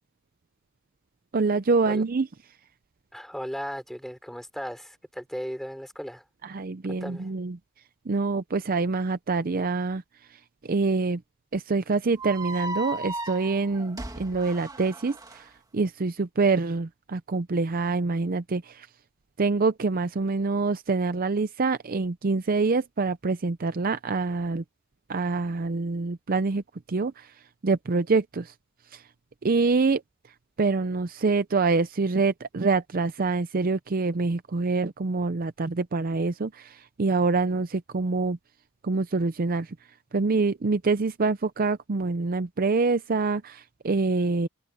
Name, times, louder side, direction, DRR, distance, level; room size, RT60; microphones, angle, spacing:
voice 1, 1.3-2.3 6.4-7.6 8.1-10.0 10.7-11.2 11.5-15.5 15.7-18.9 19.4-24.6 25.1-26.6 26.9-27.3 27.6-28.5 28.9-29.0 29.4-30.0 30.6-38.4 38.8-39.7 40.1-44.5, right 3 dB, 40° right, 0.5 m, -25 dB
voice 2, 3.1-6.2 6.9-7.3, equal, ahead, 4.5 m, -36 dB
sound 1, 12.2-15.4, right 2 dB, 15° right, 2.2 m, -35 dB
head